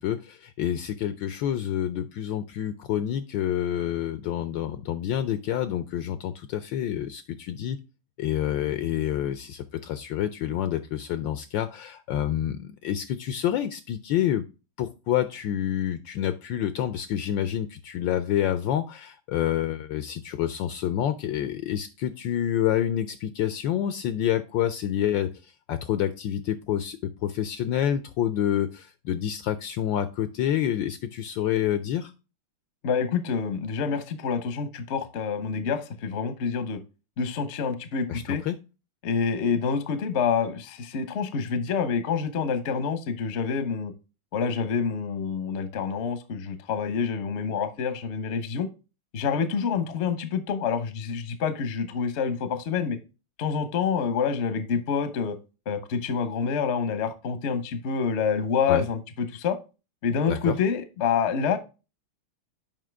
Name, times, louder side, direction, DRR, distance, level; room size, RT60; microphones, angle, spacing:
voice 1, 0.0-7.8 8.2-14.4 14.8-32.1 38.1-38.6 58.7-58.8 60.3-60.6, left 11 dB, 75° left, 12 dB, 1.1 m, -28 dB
voice 2, 32.8-36.8 37.2-38.4 39.0-43.9 44.3-48.7 49.1-53.0 53.4-55.4 55.7-59.6 60.0-61.6, left 6 dB, 50° left, 10 dB, 0.8 m, -27 dB
7.4 x 5.2 x 3.4 m, 0.30 s
omnidirectional pair, 2.3 m